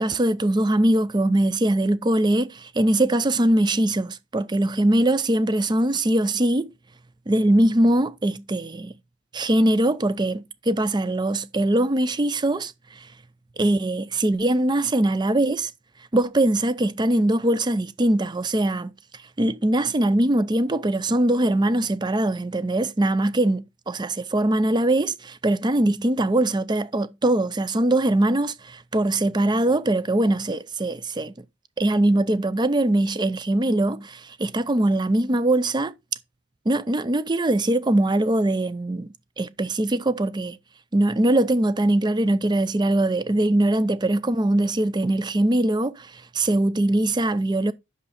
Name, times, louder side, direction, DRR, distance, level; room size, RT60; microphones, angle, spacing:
voice 1, 0.0-6.7 7.3-8.9 9.3-13.1 13.6-15.7 16.1-18.9 19.4-31.4 31.8-35.9 36.7-40.6 40.9-47.7, right 1 dB, 20° right, 0.5 m, -22 dB
8.3 x 6.4 x 4.2 m
head